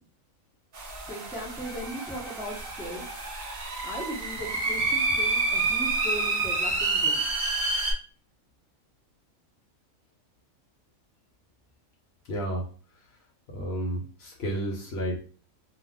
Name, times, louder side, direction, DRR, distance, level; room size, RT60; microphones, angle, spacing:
sound 1, 0.7-7.9, right 3 dB, 50° right, 0.7 m, -28 dB
voice 1, 1.1-3.1 3.8-7.2, equal, 5° right, -4 dB, 0.5 m, -38 dB
voice 2, 12.3-12.7 12.9-13.1 13.5-15.2, right 1 dB, 60° left, 0 dB, 0.8 m, -31 dB
2.4 x 2.3 x 3.5 m, 0.40 s
omnidirectional pair, 1.4 m